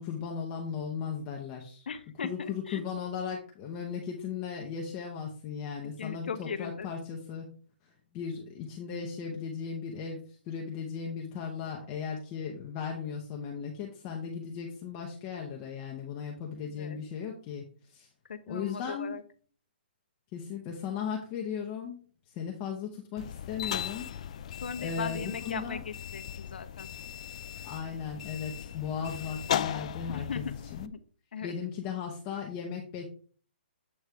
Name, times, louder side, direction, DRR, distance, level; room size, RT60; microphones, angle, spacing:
voice 1, 0.0-1.9 2.2-7.5 7.8-18.1 18.5-19.2 20.3-24.1 24.8-25.8 27.6-30.9 31.4-33.1, left 6 dB, 20° left, 0 dB, 0.7 m, -37 dB
voice 2, 1.9-2.8 6.0-6.9 16.8-17.0 18.3-19.2 24.6-26.9 30.1-30.5 30.8-31.0 31.3-31.6, left 6 dB, 65° left, 9 dB, 0.9 m, -38 dB
sound 1, 23.2-30.9, left 10 dB, 35° left, 0.3 m, -37 dB
8.1 x 3.2 x 4.7 m, 0.43 s
hypercardioid pair, 165°, 6 cm